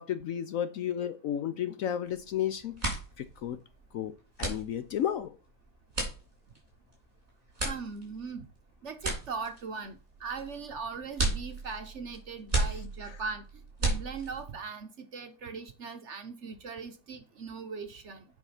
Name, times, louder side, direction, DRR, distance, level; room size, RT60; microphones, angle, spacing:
voice 1, 0.0-3.6 3.9-4.1 4.4-5.3, left 10 dB, 70° left, 0.9 m, -33 dB
sound 1, 2.1-2.3 2.6-14.6, right 2 dB, 20° right, 3.7 m, -34 dB
voice 2, 7.6-8.4 8.8-18.3, right 5 dB, 55° right, 0.9 m, -40 dB
8.1 x 4.8 x 5.6 m
omnidirectional pair, 1.8 m